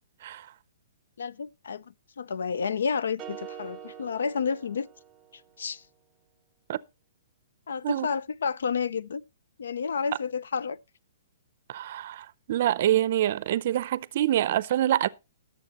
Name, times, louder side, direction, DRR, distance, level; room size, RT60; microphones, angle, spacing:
voice 1, 1.2-4.9 5.6-5.8 7.7-9.2 9.6-10.8, left 6 dB, 85° left, 0.5 m, -30 dB
sound 1, 3.2-5.5, right 9 dB, 15° right, 0.8 m, -44 dB
voice 2, 11.7-15.1, right 12 dB, 45° right, 0.5 m, -26 dB
18.0 x 7.2 x 2.9 m
hypercardioid pair, 165°, 0 cm